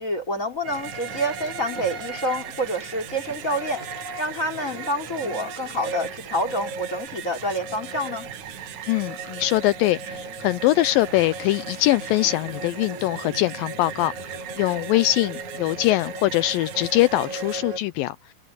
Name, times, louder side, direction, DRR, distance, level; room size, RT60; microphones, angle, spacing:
voice 1, 0.0-3.8 4.2-8.3, equal, 20° left, 3.7 m, -28 dB
sound 1, 0.6-17.8, right 2 dB, 50° right, 9.2 m, -38 dB
sound 2, 0.6-17.6, right 11 dB, 85° right, 3.5 m, -40 dB
voice 2, 8.9-18.2, left 17 dB, 80° left, 2.2 m, -22 dB
omnidirectional pair, 4.3 m